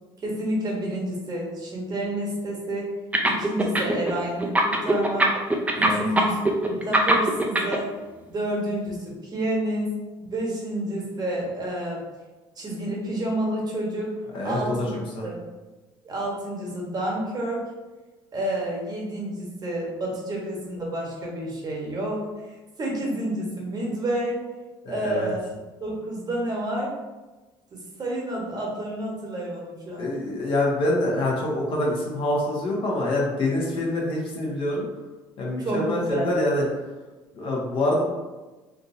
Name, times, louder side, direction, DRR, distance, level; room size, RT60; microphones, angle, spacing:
voice 1, 0.2-2.9 3.2-5.3 5.7-6.4 6.7-7.9 8.3-9.9 10.2-12.0 12.6-14.9 15.2-15.4 16.0-17.7 18.3-22.2 22.8-24.4 24.9-25.4 25.8-26.9 27.7-30.0 35.6-36.2, right 1 dB, 35° right, -2 dB, 1.0 m, -29 dB
sound 1, 3.1-4.1 4.4-7.8, right 2 dB, 15° right, 0.5 m, -20 dB
voice 2, 14.3-14.8 15.1-15.3 24.8-25.3 30.0-34.9 35.4-36.7 37.3-38.0, left 1 dB, 50° left, -3 dB, 1.0 m, -25 dB
3.5 x 2.7 x 2.6 m, 1.2 s
supercardioid pair, 85°, 11 cm